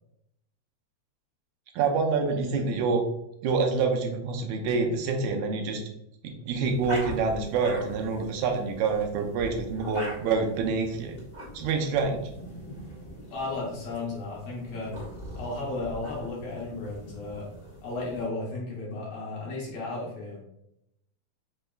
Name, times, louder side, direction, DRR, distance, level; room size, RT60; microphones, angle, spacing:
voice 1, 1.8-3.0 3.4-5.8 6.2-11.2 11.5-12.2, right 4 dB, 80° right, 3 dB, 2.0 m, -27 dB
sound 1, 6.5-18.3, equal, 85° left, 0.4 m, -42 dB
voice 2, 13.3-15.0 15.4-17.5 17.8-20.4, left 2 dB, 65° left, -4 dB, 2.0 m, -34 dB
5.1 x 3.3 x 2.3 m, 0.79 s
omnidirectional pair, 3.4 m